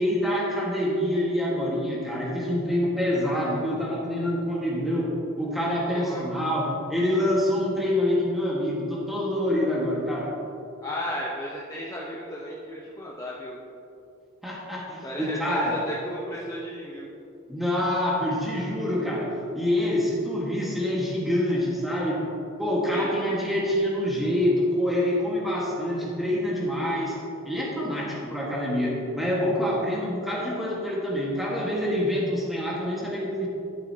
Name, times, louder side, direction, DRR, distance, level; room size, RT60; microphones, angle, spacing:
voice 1, 0.0-10.3 14.4-15.7 17.5-22.2 22.6-27.2 27.4-33.5, left 1 dB, ahead, -5 dB, 1.5 m, -26 dB
voice 2, 5.8-6.2 10.8-13.6 15.0-17.1 22.9-23.4, equal, 15° left, -6 dB, 0.8 m, -34 dB
12.5 x 7.9 x 2.8 m, 2.7 s
head